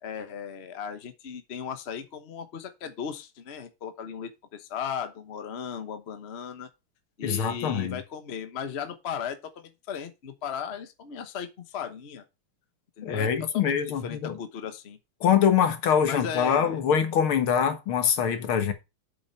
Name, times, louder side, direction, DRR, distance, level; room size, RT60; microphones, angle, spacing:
voice 1, 0.0-6.7 7.2-12.2 13.0-15.0 16.1-16.8, left 7 dB, 40° left, 1.0 m, -36 dB
voice 2, 7.2-8.0 13.0-14.4 15.2-18.7, left 8 dB, 75° left, 2.2 m, -24 dB
8.3 x 7.1 x 4.5 m
omnidirectional pair, 2.3 m